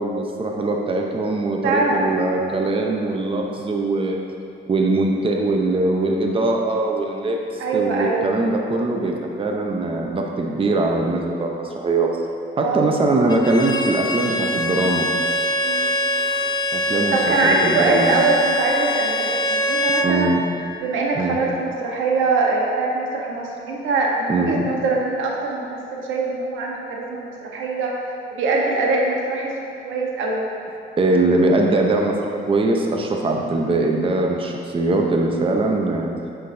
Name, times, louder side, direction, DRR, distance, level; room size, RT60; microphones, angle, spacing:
voice 1, 0.0-4.2 4.7-12.1 12.6-15.1 16.7-17.1 17.4-18.2 20.0-20.4 21.1-21.4 24.3-24.6 31.0-36.1, right 2 dB, 25° right, 1 dB, 0.7 m, -21 dB
voice 2, 1.6-2.1 7.6-8.4 12.6-12.9 15.6-15.9 17.1-20.3 20.8-27.9 28.3-29.5 29.8-30.4, right 3 dB, 85° right, -2 dB, 1.0 m, -22 dB
Bowed string instrument, 13.3-20.1, left 1 dB, 20° left, 0.5 m, -23 dB
8.2 x 5.9 x 2.7 m, 2.6 s
cardioid pair, 90°, 20 cm